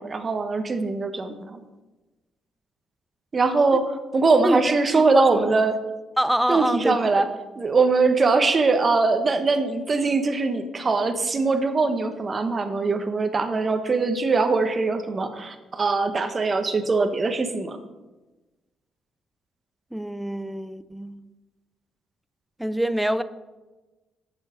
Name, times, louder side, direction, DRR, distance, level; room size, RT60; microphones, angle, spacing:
voice 1, 0.0-1.6 3.3-5.7 6.5-7.2 7.6-17.8, right 3 dB, 35° right, 8 dB, 1.2 m, -22 dB
voice 2, 4.9-5.5 6.2-7.0 19.9-21.2 22.6-23.2, right 1 dB, 5° right, 13 dB, 0.6 m, -25 dB
7.3 x 7.3 x 6.3 m, 1.1 s
cardioid pair, 90°, 0 cm